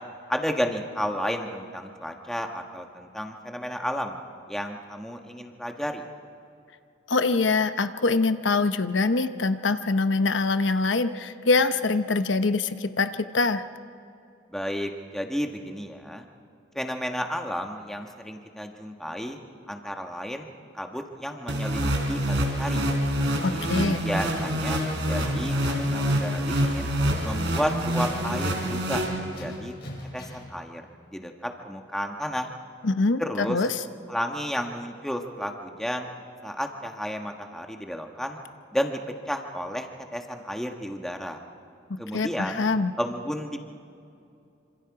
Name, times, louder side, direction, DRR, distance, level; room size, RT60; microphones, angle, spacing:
voice 1, 0.3-4.2 4.5-6.0 14.5-16.2 16.7-19.4 19.7-20.5 20.7-22.9 23.5-26.9 27.2-29.7 30.1-30.8 31.1-32.5 33.2-33.6 34.1-36.1 36.4-38.4 38.7-39.0 39.3-41.4 42.0-42.6 43.0-43.6, equal, ahead, 3 dB, 1.5 m, -32 dB
voice 2, 7.1-13.6 23.4-24.0 32.8-33.7 42.1-42.9, left 3 dB, 90° left, 10 dB, 0.9 m, -24 dB
sound 1, 21.5-29.6, equal, 75° right, 3.9 m, -26 dB
Tools, 23.9-30.5, left 1 dB, 60° left, 6.0 m, -42 dB
26.5 x 26.5 x 4.9 m, 2.6 s
head